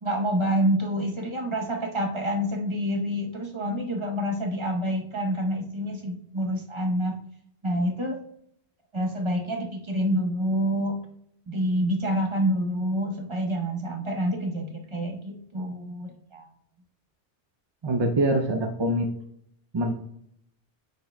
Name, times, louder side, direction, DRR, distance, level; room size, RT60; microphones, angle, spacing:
voice 1, 0.0-7.2 7.6-8.2 8.9-11.0 11.5-16.5, equal, 30° right, 2 dB, 0.8 m, -27 dB
voice 2, 17.8-19.1 19.7-19.9, right 1 dB, 45° right, 4 dB, 0.3 m, -24 dB
9.4 x 4.6 x 2.2 m, 0.72 s
omnidirectional pair, 1.2 m